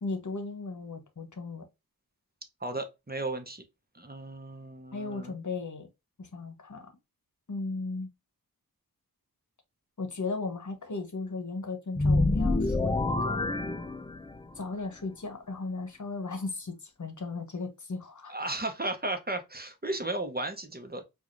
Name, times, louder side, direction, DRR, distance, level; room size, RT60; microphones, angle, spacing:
voice 1, 0.0-1.6 4.9-5.9 6.2-6.9 7.5-8.1 10.0-13.5 14.5-18.3, left 3 dB, 55° left, 1.0 m, -36 dB
voice 2, 2.6-3.6 3.9-5.3 18.3-21.0, right 2 dB, 25° right, 0.8 m, -35 dB
sound 1, 11.9-14.5, left 2 dB, 15° left, 0.3 m, -27 dB
4.7 x 2.4 x 2.5 m
wide cardioid pair, 50°, 36 cm